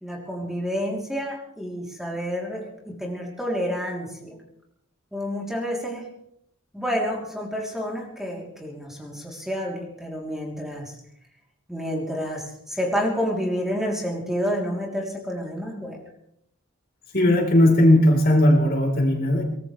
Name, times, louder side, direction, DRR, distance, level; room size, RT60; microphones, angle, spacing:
voice 1, 0.0-4.3 5.1-6.1 6.7-10.9 11.7-16.0, equal, ahead, -2 dB, 3.2 m, -29 dB
voice 2, 17.1-19.4, left 1 dB, 45° left, 1 dB, 3.9 m, -17 dB
23.0 x 19.0 x 3.3 m, 0.74 s
head